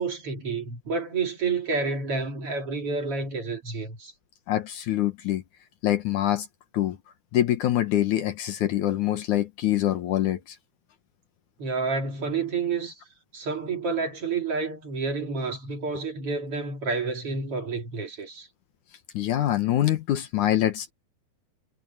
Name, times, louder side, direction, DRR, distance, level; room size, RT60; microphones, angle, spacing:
voice 1, 0.0-4.1 11.6-12.9 13.3-18.5, right 4 dB, 40° right, 3.0 m, -29 dB
voice 2, 4.5-5.4 5.8-6.5 6.7-7.0 7.3-10.6 19.1-20.9, left 13 dB, 65° left, 2.0 m, -25 dB
omnidirectional pair, 4.9 m